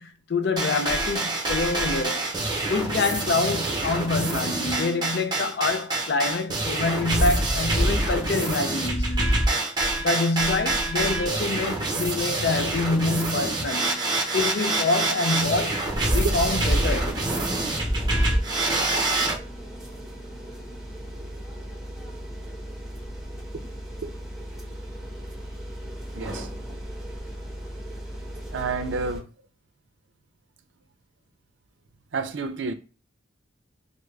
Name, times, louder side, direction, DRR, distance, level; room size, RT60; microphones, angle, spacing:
voice 1, 0.0-2.3 2.7-9.5 10.0-17.2, left 3 dB, 60° left, 0.4 m, -26 dB
sound 1, 0.6-19.4, right 2 dB, 20° right, 0.7 m, -26 dB
sound 2, 15.9-29.2, equal, 5° right, 1.3 m, -37 dB
voice 2, 26.1-26.5 28.5-29.3 32.1-32.7, right 4 dB, 75° right, 0.5 m, -30 dB
3.5 x 2.0 x 3.3 m
head